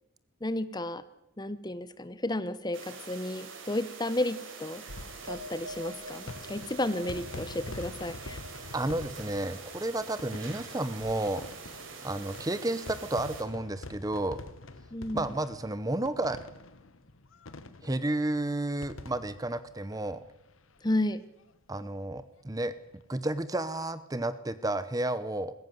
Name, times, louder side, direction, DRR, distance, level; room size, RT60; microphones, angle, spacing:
voice 1, 0.4-1.0 1.4-4.8 5.2-8.4 14.9-15.3 20.8-21.2, left 1 dB, 20° left, 14 dB, 0.9 m, -32 dB
sound 1, 2.7-13.4, right 5 dB, 60° right, 4.1 m, -45 dB
sound 2, 4.7-20.8 21.1-21.2 21.4-21.5 22.8-23.0, left 2 dB, 70° left, 1.4 m, -46 dB
sound 3, 5.3-12.0 12.2-12.9, equal, 80° right, 2.2 m, -49 dB
voice 2, 8.7-11.4 12.0-14.4 15.1-16.4 17.8-20.2 21.7-22.7 23.1-25.5, right 1 dB, 15° right, 14 dB, 0.8 m, -31 dB
20.5 x 16.5 x 9.3 m, 0.91 s
head